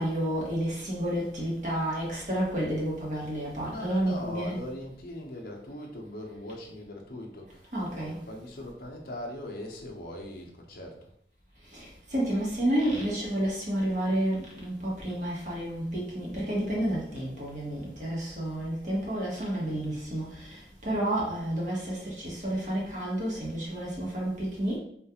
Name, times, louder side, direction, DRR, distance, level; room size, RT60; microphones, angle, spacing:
voice 1, 0.0-4.6 7.7-8.2 11.7-24.8, right 1 dB, 45° right, -4 dB, 1.0 m, -30 dB
voice 2, 3.6-7.6 7.9-11.1, left 1 dB, 55° left, 0 dB, 0.6 m, -40 dB
3.6 x 2.4 x 2.8 m, 0.68 s
head